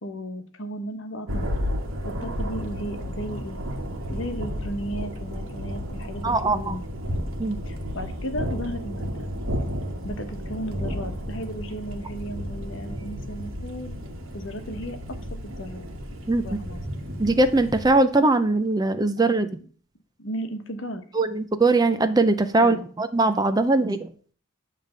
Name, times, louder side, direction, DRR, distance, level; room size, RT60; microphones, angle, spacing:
voice 1, 0.0-1.5 2.0-3.6 4.1-6.8 7.6-9.3 10.0-14.0 14.3-15.2 15.6-15.9 16.4-16.8 20.2-21.0 22.6-22.9 23.8-23.9, equal, 65° left, 7 dB, 1.1 m, -35 dB
Thunder, 1.3-17.9, equal, 80° right, 1.4 m, -32 dB
voice 2, 6.2-6.8 7.4-7.6 16.3-16.6 17.2-19.6 21.1-24.1, right 2 dB, 20° right, 10 dB, 0.4 m, -21 dB
9.4 x 3.3 x 6.6 m, 0.43 s
head